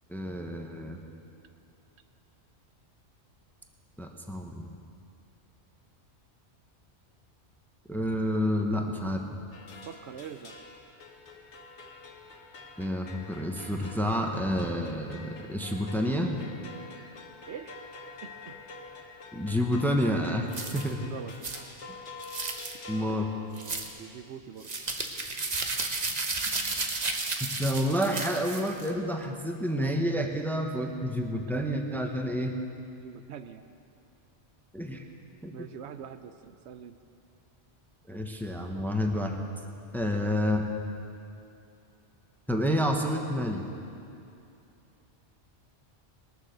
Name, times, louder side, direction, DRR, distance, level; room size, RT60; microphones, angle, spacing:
voice 1, 0.1-1.0 4.0-4.7 7.9-9.2 12.8-16.4 19.3-21.1 22.9-23.3 27.4-32.5 34.7-35.0 35.4-35.5 38.1-39.4 39.9-40.7 42.5-43.6, equal, ahead, 3 dB, 0.8 m, -29 dB
sound 1, 9.5-24.0, left 3 dB, 90° left, 1.6 m, -47 dB
voice 2, 9.9-10.6 17.5-17.8 18.2-18.6 21.0-21.3 23.1-23.2 23.9-24.7 33.0-33.6 35.5-37.0, right 8 dB, 75° right, 10 dB, 0.9 m, -43 dB
sound 2, 20.5-20.9 21.4-21.6 22.2-22.8 23.6-23.9 24.6-28.9, right 3 dB, 40° right, 1.0 m, -33 dB
20.5 x 7.2 x 6.6 m, 2.7 s
omnidirectional pair, 1.2 m